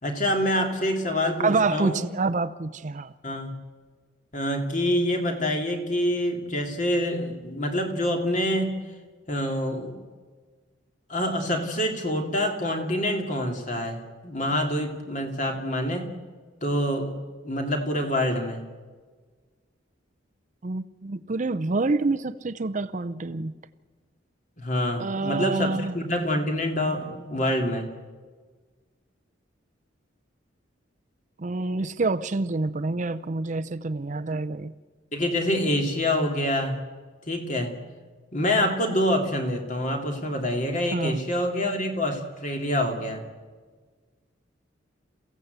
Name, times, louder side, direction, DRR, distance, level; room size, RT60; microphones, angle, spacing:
voice 1, 0.0-2.0 3.2-3.6 4.3-8.7 9.3-10.0 11.1-16.1 16.6-17.2 17.4-18.6 24.6-27.9 35.1-36.8 37.3-37.7 38.3-43.2, left 1 dB, 40° left, 3 dB, 2.8 m, -26 dB
voice 2, 1.4-3.1 20.6-23.5 25.0-25.9 31.4-34.7 40.9-41.2, right 3 dB, 40° right, 12 dB, 0.6 m, -27 dB
28.5 x 16.0 x 8.1 m, 1.5 s
head